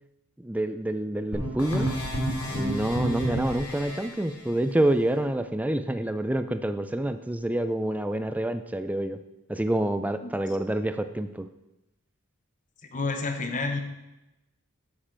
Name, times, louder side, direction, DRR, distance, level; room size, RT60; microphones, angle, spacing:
voice 1, 0.4-1.9 2.5-9.2 9.5-11.5, right 1 dB, 5° right, 9 dB, 0.4 m, -27 dB
sound 1, 1.3-4.1, equal, 85° left, 2.4 m, -29 dB
voice 2, 12.9-13.8, left 3 dB, 35° left, 5 dB, 1.0 m, -29 dB
8.6 x 7.5 x 4.5 m, 0.96 s
head